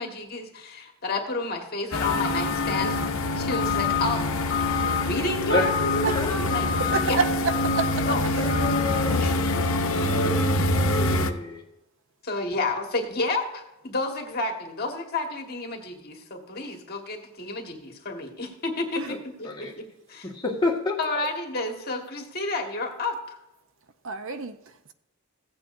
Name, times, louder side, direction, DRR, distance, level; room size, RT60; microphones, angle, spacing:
voice 1, 0.0-4.3 4.8-6.6 7.1-7.2 8.0-8.2 9.2-9.6 10.0-10.6 11.1-11.2 12.2-20.2 21.0-23.4, left 2 dB, 45° left, 1.6 m, -30 dB
sound 1, 1.9-11.3, left 2 dB, 60° left, 0.8 m, -25 dB
voice 2, 6.1-7.1 8.3-11.6 19.1-19.2 19.4-19.8 20.2-21.0, left 3 dB, 20° left, 1.6 m, -30 dB
voice 3, 6.8-8.1 8.4-8.5 19.0-19.2 24.0-24.9, right 4 dB, 60° right, 0.7 m, -29 dB
15.5 x 8.6 x 2.6 m
head